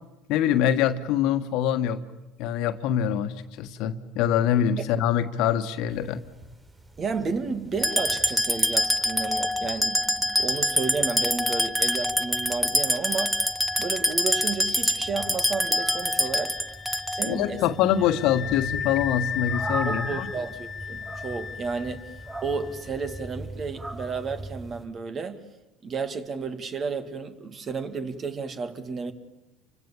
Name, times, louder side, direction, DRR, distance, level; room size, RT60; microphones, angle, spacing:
voice 1, 0.3-2.0 2.4-6.2 17.2-20.3, left 10 dB, 65° left, 1.6 m, -24 dB
sound 1, 5.9-24.9, right 2 dB, 15° right, 6.0 m, -41 dB
voice 2, 7.0-13.5 13.8-16.6 17.1-17.6 19.8-22.1 22.4-25.5 25.8-29.1, right 4 dB, 40° right, 2.3 m, -32 dB
sound 2, 7.8-17.5, equal, ahead, 1.1 m, -25 dB
Wind instrument woodwind instrument, 15.8-23.2, left 8 dB, 45° left, 1.1 m, -36 dB
29.5 x 25.0 x 7.3 m
hypercardioid pair, 75°, 0 cm